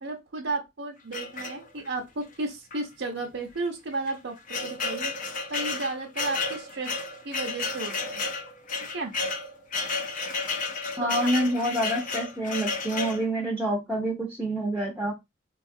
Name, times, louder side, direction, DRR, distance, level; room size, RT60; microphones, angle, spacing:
voice 1, 0.0-5.1 5.5-8.2 8.9-9.1 11.0-11.3, right 3 dB, 85° right, 0 dB, 0.7 m, -33 dB
sound 1, 1.1-2.0 2.7-2.8 3.1-3.2 3.9-13.3, left 4 dB, 45° left, 0.6 m, -32 dB
voice 2, 11.0-15.1, right 1 dB, 10° right, -1 dB, 0.6 m, -27 dB
3.9 x 2.4 x 2.6 m, 0.21 s
head